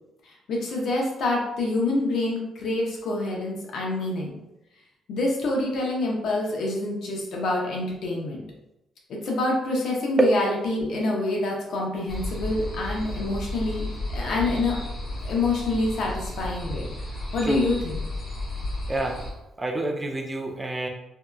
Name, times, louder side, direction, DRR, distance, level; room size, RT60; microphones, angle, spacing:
voice 1, 0.5-4.4 5.1-8.4 9.1-13.8 14.1-14.8 15.2-16.9 17.3-17.9, left 2 dB, 70° left, -2 dB, 0.7 m, -26 dB
sound 1, 12.1-19.3, left 1 dB, 40° left, 0.9 m, -33 dB
voice 2, 19.6-20.9, right 2 dB, 20° right, 2 dB, 0.5 m, -26 dB
2.7 x 2.3 x 2.2 m, 0.92 s
cardioid pair, 90°, 0 cm